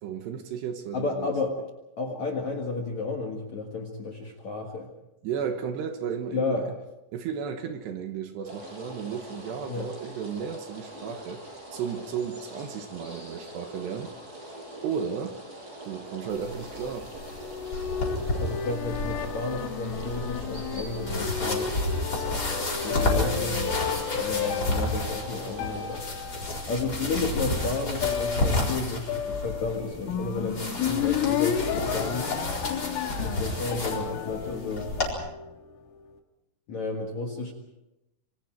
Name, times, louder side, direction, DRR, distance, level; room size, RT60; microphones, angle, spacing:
voice 1, 0.0-1.3 5.2-6.7 7.1-14.1 14.8-15.4 15.8-17.1, right 7 dB, 70° right, 3.0 m, -34 dB
voice 2, 0.9-1.6 2.0-4.9 6.3-6.7 9.7-9.9 18.4-21.7 22.7-23.7 24.2-26.0 26.7-32.3 33.2-34.9 36.7-37.5, left 3 dB, 55° left, 2.1 m, -32 dB
sound 1, 8.4-26.0, right 1 dB, 20° right, 5.7 m, -43 dB
sound 2, 16.3-35.1, left 2 dB, 20° left, 4.4 m, -32 dB
sound 3, 17.2-35.7, left 8 dB, 80° left, 4.1 m, -32 dB
27.0 x 25.5 x 4.6 m
omnidirectional pair, 5.8 m